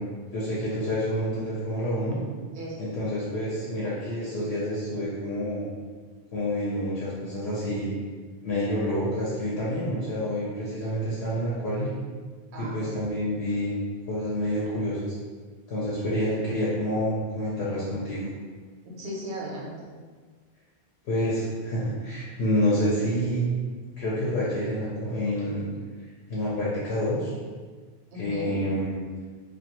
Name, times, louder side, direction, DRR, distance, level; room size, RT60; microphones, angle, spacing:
voice 1, 0.3-2.2 2.8-5.7 6.3-7.9 8.4-11.9 12.6-13.7 14.1-15.0 15.7-18.3 21.0-23.4 24.0-25.7 26.0-27.3 28.2-29.0, equal, 75° left, -7 dB, 0.8 m, -28 dB
voice 2, 2.5-2.9 12.5-13.0 18.8-19.9 28.1-28.6, right 1 dB, 80° right, -4 dB, 0.9 m, -36 dB
2.3 x 2.2 x 2.8 m, 1.5 s
omnidirectional pair, 1.1 m